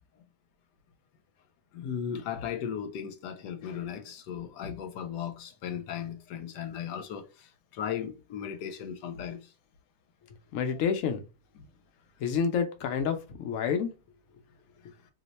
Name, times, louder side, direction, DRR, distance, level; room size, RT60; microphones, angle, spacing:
voice 1, 1.7-9.4 10.7-10.8 11.6-11.7, left 8 dB, 90° left, 1.2 m, -37 dB
voice 2, 10.5-11.2 12.2-13.9, left 6 dB, 65° left, 0.9 m, -28 dB
2.9 x 2.1 x 4.0 m
omnidirectional pair, 1.8 m